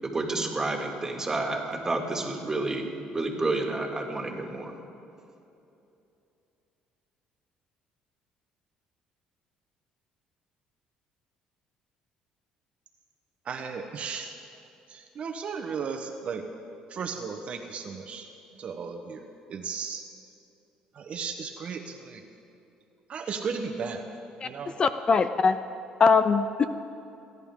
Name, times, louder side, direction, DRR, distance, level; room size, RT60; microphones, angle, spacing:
voice 1, 0.0-4.7, right 2 dB, 20° right, 1 dB, 2.3 m, -30 dB
voice 2, 13.4-14.3 14.9-16.4 16.9-18.3 18.6-20.0 20.9-22.2 23.1-24.0 24.4-24.8, right 5 dB, 50° right, 5 dB, 1.0 m, -35 dB
voice 3, 24.8-25.6 26.0-26.6, left 5 dB, 35° left, 11 dB, 0.5 m, -21 dB
28.5 x 11.0 x 3.7 m, 2.8 s
cardioid pair, 100°, 3 cm